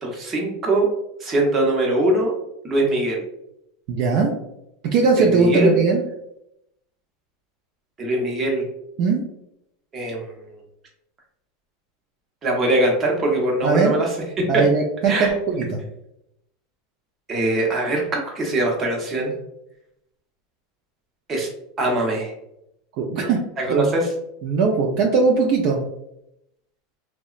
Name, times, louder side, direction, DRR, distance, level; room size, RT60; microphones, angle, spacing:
voice 1, 0.0-0.9 1.2-2.3 2.6-3.2 5.2-5.8 8.0-8.6 9.9-10.3 12.4-14.1 14.4-14.5 15.1-15.3 17.3-19.3 21.3-21.5 21.8-22.3 23.6-24.1, right 1 dB, 25° right, 0 dB, 0.7 m, -22 dB
voice 2, 3.9-4.3 4.9-6.0 9.0-9.2 13.6-14.0 14.5-15.8 23.0-23.4 23.7-23.9 24.4-25.8, right 4 dB, 55° right, 1 dB, 0.4 m, -19 dB
2.8 x 2.1 x 2.4 m, 0.80 s
supercardioid pair, 135°, 0 cm